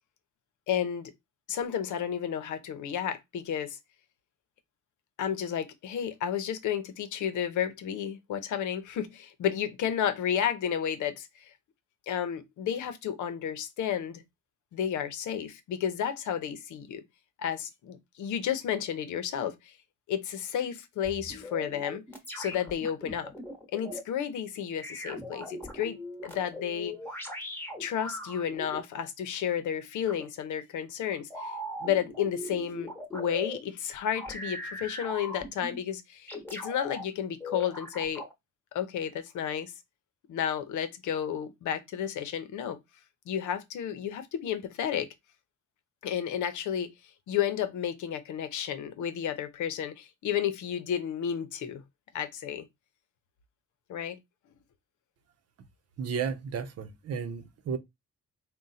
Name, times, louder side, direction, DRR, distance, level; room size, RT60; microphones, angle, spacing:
voice 1, 0.7-1.1 1.5-3.8 5.2-11.5 12.1-14.2 14.7-17.0 17.4-19.7 20.1-22.0 22.4-23.3 23.7-26.9 27.8-31.5 31.8-38.2 38.7-39.7 40.3-42.8 43.3-45.1 46.0-46.9 47.3-51.8 52.1-52.7 53.9-54.2, left 9 dB, 75° left, 0.8 m, -32 dB
sound 1, 21.0-24.0 24.8-28.8 30.1-30.3 31.3-33.6 34.1-35.8 36.3-37.0 37.4-38.3, left 1 dB, 5° left, 1.0 m, -40 dB
voice 2, 56.0-57.8, right 6 dB, 55° right, 0.7 m, -33 dB
3.7 x 2.2 x 4.1 m
cardioid pair, 90°, 30 cm